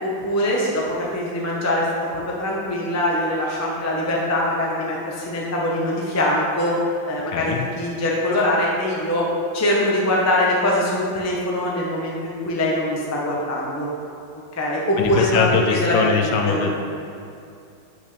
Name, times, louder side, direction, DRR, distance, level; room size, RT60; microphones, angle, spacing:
voice 1, 0.0-1.9 2.3-6.8 7.1-9.3 9.5-13.9 14.6-16.7, left 1 dB, 15° left, -4 dB, 0.5 m, -23 dB
voice 2, 7.3-7.6 15.0-16.7, left 5 dB, 75° left, 3 dB, 1.3 m, -21 dB
8.0 x 6.5 x 3.4 m, 2.6 s
omnidirectional pair, 2.3 m